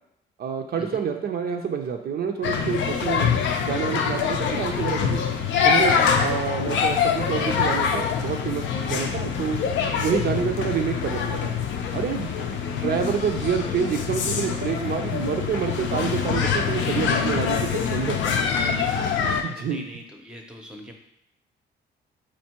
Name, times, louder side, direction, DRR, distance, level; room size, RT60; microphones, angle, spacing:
voice 1, 0.4-5.2 5.6-5.9 6.2-9.6 10.0-11.5 11.9-12.5 12.8-18.2 19.2-19.8, right 7 dB, 55° right, 4 dB, 0.4 m, -28 dB
sound 1, 2.4-19.4, left 6 dB, 70° left, 0.5 m, -25 dB
voice 2, 12.4-12.8 18.6-20.9, equal, 5° right, 2 dB, 0.6 m, -42 dB
4.4 x 2.5 x 2.9 m, 0.81 s
cardioid pair, 90°, 20 cm